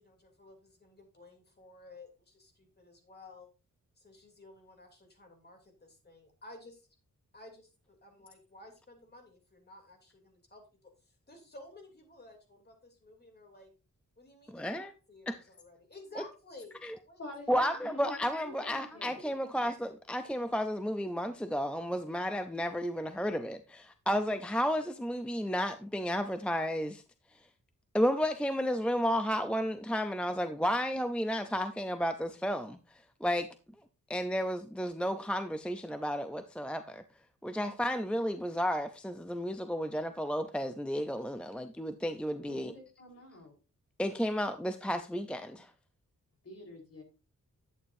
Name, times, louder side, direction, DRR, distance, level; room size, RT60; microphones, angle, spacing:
voice 1, 0.0-3.5 4.0-6.9 7.3-13.7 14.2-17.2, left 2 dB, 30° left, 3.0 m, -54 dB
voice 2, 14.5-14.9 15.3-15.4 16.8-16.9 17.5-27.0 27.9-33.5 34.1-37.0 37.4-42.7 44.0-45.7, equal, 5° left, 0.5 m, -32 dB
voice 3, 17.2-19.3 42.4-43.5 46.4-47.0, left 2 dB, 50° left, 4.4 m, -48 dB
11.5 x 8.9 x 2.7 m
wide cardioid pair, 145°, 31 cm